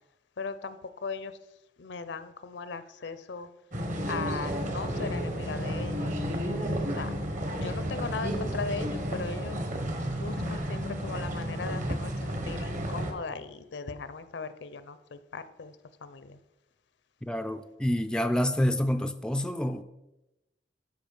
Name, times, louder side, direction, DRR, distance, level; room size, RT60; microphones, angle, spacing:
voice 1, 0.4-1.4 1.8-3.5 4.1-6.2 6.9-7.2 7.6-9.6 10.1-15.7 16.0-16.4, left 4 dB, 75° left, 13 dB, 0.6 m, -38 dB
sound 1, 3.7-13.1, equal, 45° right, 1.2 m, -32 dB
voice 2, 17.2-19.8, equal, 5° left, 8 dB, 0.3 m, -28 dB
12.5 x 5.0 x 5.3 m, 0.97 s
head